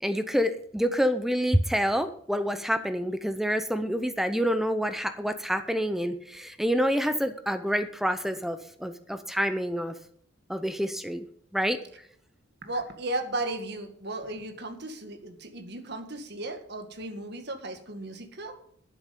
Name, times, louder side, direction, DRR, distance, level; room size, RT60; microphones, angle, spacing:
voice 1, 0.0-9.9 10.5-11.2 11.5-11.8, equal, ahead, 10 dB, 0.7 m, -27 dB
voice 2, 12.6-18.6, right 2 dB, 55° right, 6 dB, 1.9 m, -35 dB
12.0 x 9.8 x 5.3 m, 0.65 s
head